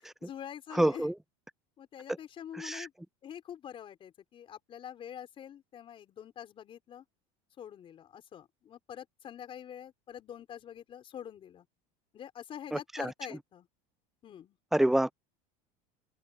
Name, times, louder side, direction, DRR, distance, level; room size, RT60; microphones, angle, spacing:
voice 1, 0.2-1.1 1.8-2.9 3.2-7.0 7.6-11.7 12.1-13.7 14.2-14.6, left 9 dB, 30° left, 4.5 m, -45 dB
voice 2, 0.7-1.1 2.6-2.9 12.7-13.1 14.7-15.1, right 1 dB, ahead, 0.4 m, -27 dB
cardioid pair, 150°, 18 cm